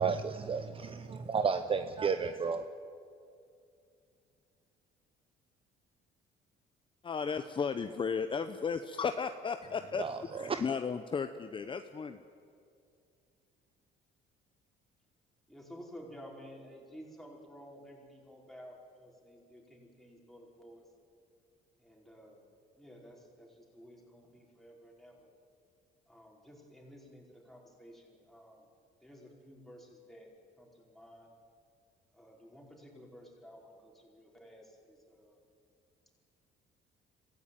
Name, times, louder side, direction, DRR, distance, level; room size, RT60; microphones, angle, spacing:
voice 1, 0.0-0.6 1.3-2.6 10.0-10.6, right 5 dB, 30° right, 9 dB, 0.8 m, -31 dB
voice 2, 7.0-10.1 10.3-12.2, left 6 dB, 30° left, 9 dB, 0.8 m, -34 dB
voice 3, 15.5-20.8 21.8-22.4 22.8-25.3 26.1-28.7 29.0-30.3 30.6-31.3 32.1-35.4, equal, ahead, -1 dB, 4.8 m, -53 dB
24.5 x 15.5 x 9.1 m, 2.4 s
cardioid pair, 110°, 17 cm